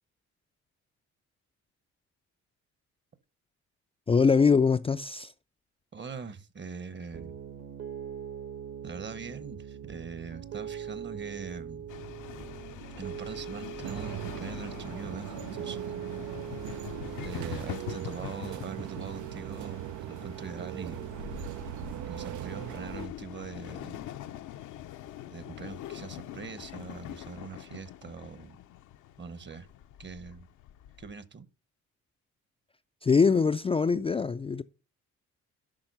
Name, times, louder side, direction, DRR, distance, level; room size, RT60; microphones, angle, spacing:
voice 1, 4.1-5.3 33.0-34.6, left 5 dB, 20° left, 0.4 m, -23 dB
voice 2, 5.9-7.3 8.8-11.9 13.0-16.0 17.2-21.1 22.1-24.0 25.3-28.6 29.2-29.7 30.0-30.5 31.0-31.5, right 5 dB, 35° right, 1.0 m, -42 dB
Piano, 7.1-17.5, right 8 dB, 60° right, 1.5 m, -41 dB
sound 1, 11.9-31.1, left 12 dB, 80° left, 0.7 m, -44 dB
sound 2, 13.8-23.1, right 14 dB, 75° right, 0.5 m, -40 dB
8.9 x 5.8 x 5.4 m
cardioid pair, 90°, 30 cm